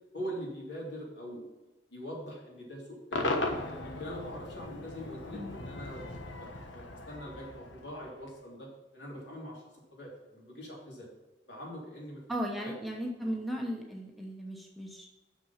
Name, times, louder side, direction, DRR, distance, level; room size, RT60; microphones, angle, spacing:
voice 1, 0.1-1.4 1.9-3.3 3.8-6.1 6.4-9.6 9.9-11.1 11.5-12.2 12.6-12.7 13.2-13.4, equal, 65° left, -3 dB, 3.2 m, -43 dB
Cheering / Crowd / Fireworks, 3.1-8.4, left 2 dB, 85° left, 1.3 m, -37 dB
voice 2, 12.3-15.1, equal, ahead, -1 dB, 0.9 m, -36 dB
6.9 x 6.1 x 5.6 m, 1.1 s
head